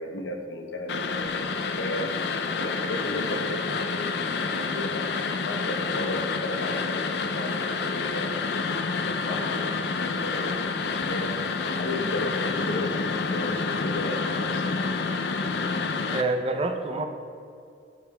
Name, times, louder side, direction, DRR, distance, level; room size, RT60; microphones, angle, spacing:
voice 1, 0.0-2.1 2.5-5.0 5.4-8.4 9.3-14.7, left 1 dB, 90° left, 3 dB, 0.9 m, -34 dB
sound 1, 0.9-16.2, left 4 dB, 65° left, 0.4 m, -28 dB
voice 2, 16.1-17.0, right 2 dB, 30° right, 6 dB, 0.5 m, -27 dB
12.0 x 6.7 x 2.3 m, 2.5 s
head